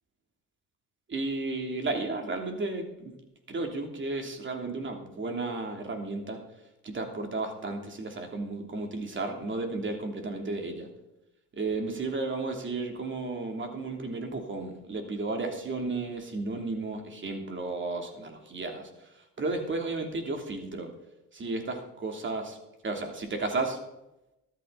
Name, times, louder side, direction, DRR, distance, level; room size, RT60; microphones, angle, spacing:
voice 1, 1.1-3.1 3.5-6.4 6.8-10.9 11.5-19.1 19.4-20.9 21.3-22.6 22.8-23.8, right 3 dB, 35° right, 4 dB, 3.1 m, -33 dB
13.5 x 12.5 x 4.1 m, 0.93 s
cardioid pair, 95°, 34 cm